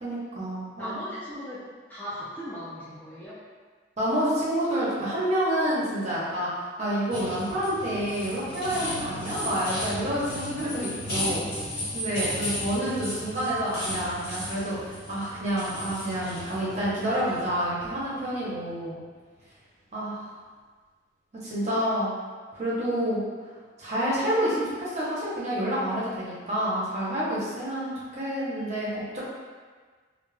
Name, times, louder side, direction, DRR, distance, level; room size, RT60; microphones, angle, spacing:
voice 1, 0.0-1.0 4.0-6.5 6.8-11.4 11.9-19.0 19.9-20.3 21.4-22.1 22.5-23.2 23.8-28.9 29.1-29.2, equal, 35° right, -8 dB, 0.7 m, -28 dB
voice 2, 0.8-1.6 1.9-3.4, equal, 10° left, -10 dB, 0.4 m, -37 dB
sound 1, 7.1-18.7, equal, 55° left, 1.2 m, -35 dB
2.3 x 2.0 x 3.2 m, 1.5 s
head